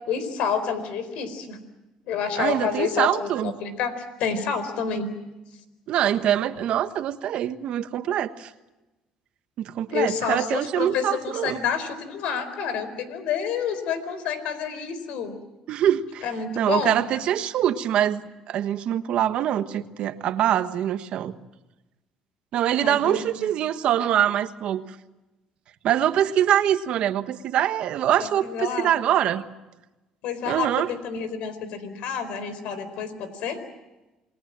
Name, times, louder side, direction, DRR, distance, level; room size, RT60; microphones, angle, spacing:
voice 1, 0.1-1.6 2.1-3.9 4.2-5.1 9.9-15.3 16.2-17.0 22.8-23.5 28.2-28.9 30.2-33.6, left 6 dB, 75° left, 11 dB, 4.4 m, -29 dB
voice 2, 2.4-3.5 5.9-8.5 9.6-11.6 15.7-16.2 16.6-18.2 18.5-21.3 22.5-24.8 25.8-29.4 30.5-30.9, right 11 dB, 60° right, 10 dB, 1.3 m, -24 dB
28.5 x 21.5 x 7.6 m, 1.0 s
cardioid pair, 110°, 2 cm